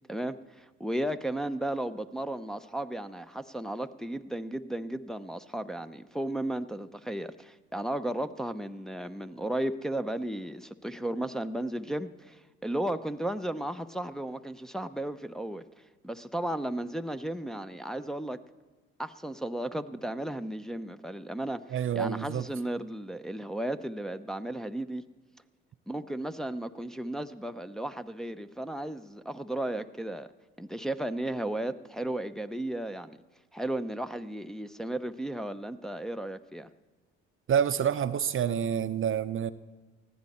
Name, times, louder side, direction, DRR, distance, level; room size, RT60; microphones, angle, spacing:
voice 1, 0.1-15.6 16.0-18.4 19.0-25.0 25.9-30.3 30.6-33.2 33.5-36.7, right 1 dB, ahead, 7 dB, 0.7 m, -34 dB
voice 2, 21.7-22.4 37.5-39.5, right 8 dB, 45° right, 13 dB, 0.7 m, -28 dB
19.5 x 14.5 x 4.3 m, 1.2 s
hypercardioid pair, 55°, 30 cm